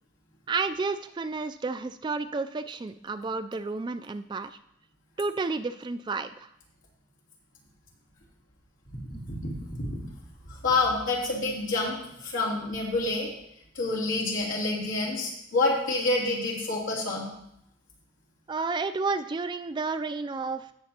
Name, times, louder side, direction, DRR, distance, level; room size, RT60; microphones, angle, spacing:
voice 1, 0.5-4.6 5.2-6.5 9.1-9.2 18.5-20.7, right 4 dB, 25° right, 10 dB, 0.3 m, -31 dB
voice 2, 9.0-10.0 10.6-13.3 13.7-17.3, left 2 dB, 90° left, -5 dB, 3.0 m, -28 dB
16.5 x 6.9 x 2.9 m, 0.77 s
head